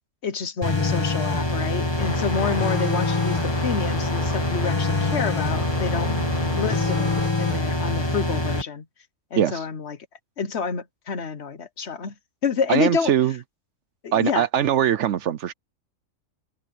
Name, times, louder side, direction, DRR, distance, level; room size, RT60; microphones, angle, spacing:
voice 1, 0.2-6.1 6.5-8.8 9.3-10.0 10.4-12.1 12.4-13.1 14.0-14.5, left 5 dB, 55° left, 1.2 m, -28 dB
sound 1, 0.6-8.6, left 2 dB, 20° left, 1.9 m, -25 dB
sound 2, 2.0-7.3, left 2 dB, 35° left, 2.9 m, -33 dB
voice 2, 9.4-9.7 12.7-13.4 14.1-15.5, right 10 dB, 65° right, 0.9 m, -21 dB
open air
omnidirectional pair, 1.4 m